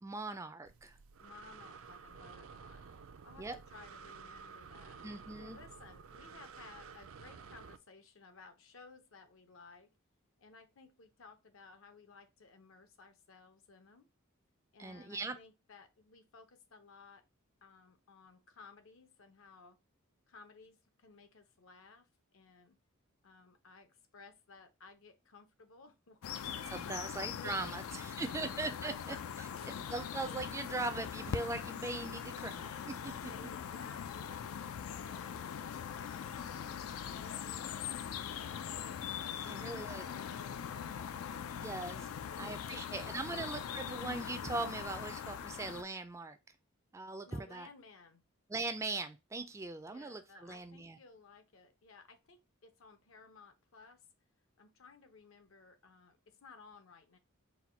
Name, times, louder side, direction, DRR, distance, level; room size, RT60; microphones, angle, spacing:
voice 1, 0.0-1.0 3.4-3.6 5.0-5.6 14.8-15.4 26.7-29.2 29.9-33.1 39.4-40.0 41.6-42.1 42.4-46.4 46.9-47.7 48.5-51.0, right 3 dB, 15° right, 0.3 m, -40 dB
Breathing, 0.7-7.8, right 5 dB, 80° right, 0.4 m, -52 dB
voice 2, 1.2-5.0 5.4-9.9 10.4-14.1 14.7-17.2 17.6-19.8 20.3-22.8 23.2-27.8 28.0-29.8 33.3-34.5 34.9-41.5 42.0-43.6 47.2-48.2 49.9-54.1 54.6-57.2, left 4 dB, 70° left, 0.7 m, -57 dB
sound 1, 26.2-45.8, left 8 dB, 90° left, 0.4 m, -42 dB
4.2 x 2.2 x 4.2 m
head